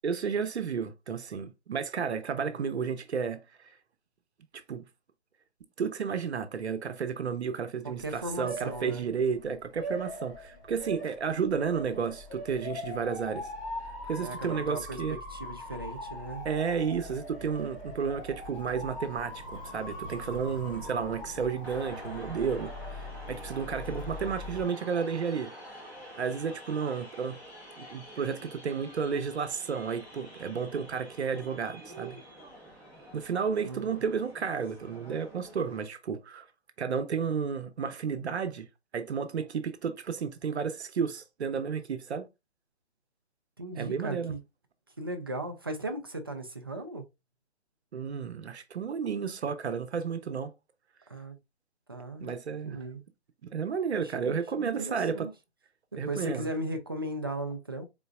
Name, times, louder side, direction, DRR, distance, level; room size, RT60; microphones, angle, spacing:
voice 1, 0.0-3.8 4.5-4.8 5.8-13.5 14.0-15.2 16.4-22.7 23.3-25.5 26.1-27.4 27.8-32.2 33.1-36.5 36.8-38.7 38.9-42.3 43.8-44.3 47.9-50.5 52.2-52.8 53.4-55.3 56.0-56.5, right 6 dB, 75° right, 0.8 m, -32 dB
voice 2, 2.4-2.8 7.8-9.0 14.2-16.5 33.6-33.9 43.6-44.4 45.0-47.1 51.1-51.4 51.9-52.3 52.6-53.0 53.9-55.3 55.9-57.9, right 1 dB, 25° right, 0.3 m, -37 dB
Motor vehicle (road) / Siren, 7.8-24.6, left 1 dB, 30° left, 2.3 m, -41 dB
sound 1, 21.6-35.8, equal, 5° left, 1.0 m, -47 dB
4.0 x 3.9 x 2.3 m
hypercardioid pair, 155°, 33 cm